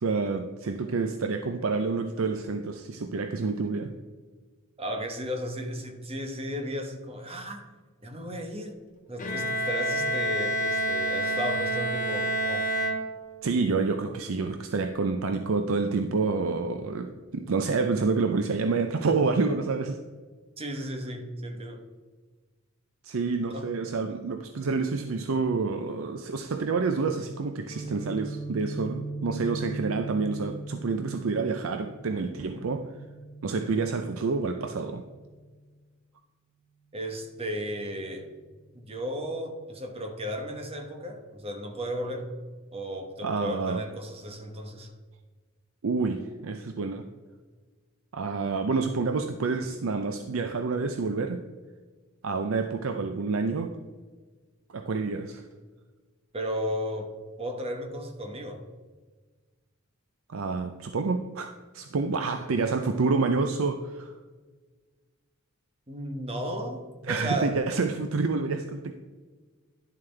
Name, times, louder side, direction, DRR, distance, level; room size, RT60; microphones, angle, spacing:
voice 1, 0.0-3.9 13.4-20.0 23.0-32.9 33.4-35.0 43.2-43.8 45.8-47.0 48.1-51.4 52.2-53.7 54.7-55.4 60.3-64.1 67.1-68.9, right 4 dB, 80° right, 6 dB, 0.5 m, -28 dB
voice 2, 4.8-7.7 8.0-8.8 9.1-12.7 20.6-21.8 23.5-23.7 36.9-38.3 38.7-42.3 42.7-44.9 56.3-57.1 57.4-58.6 65.9-67.6, equal, 30° right, 4 dB, 1.1 m, -34 dB
Bowed string instrument, 9.2-13.6, equal, 40° left, 1.3 m, -28 dB
Guitar, 27.7-35.5, right 2 dB, 25° left, 1.1 m, -40 dB
11.0 x 7.2 x 3.3 m, 1.4 s
head